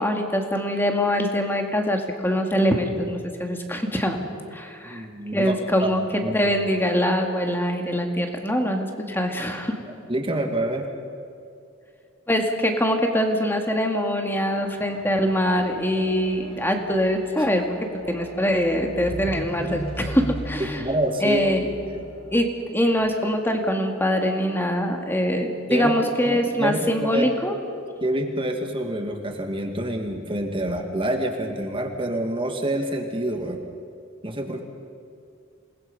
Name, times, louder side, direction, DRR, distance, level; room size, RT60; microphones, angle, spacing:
voice 1, 0.0-4.2 4.5-5.1 5.3-6.0 6.3-9.8 12.3-17.8 18.1-20.8 21.2-21.7 22.3-27.5, equal, 10° left, 3 dB, 2.0 m, -23 dB
voice 2, 4.8-5.5 6.2-6.5 9.8-10.9 20.8-21.4 21.9-22.1 25.7-25.9 26.3-27.3 28.0-33.6 34.2-34.6, right 1 dB, 25° right, 4 dB, 2.0 m, -27 dB
sound 1, 14.3-23.8 24.6-24.7, equal, 30° left, 4.6 m, -38 dB
27.5 x 20.0 x 5.5 m, 2.4 s
head